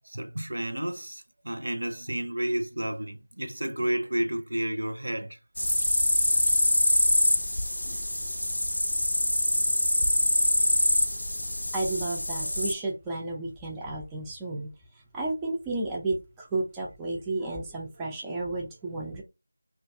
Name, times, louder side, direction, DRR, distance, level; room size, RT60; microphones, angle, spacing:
voice 1, 0.0-5.4 7.8-8.1, right 1 dB, 70° right, 0.6 m, -31 dB
sound 1, 5.6-12.7, left 1 dB, 80° left, 0.4 m, -25 dB
voice 2, 11.7-19.2, right 2 dB, 10° right, 0.3 m, -32 dB
2.5 x 2.2 x 2.4 m
figure-of-eight pair, 170°, 0 cm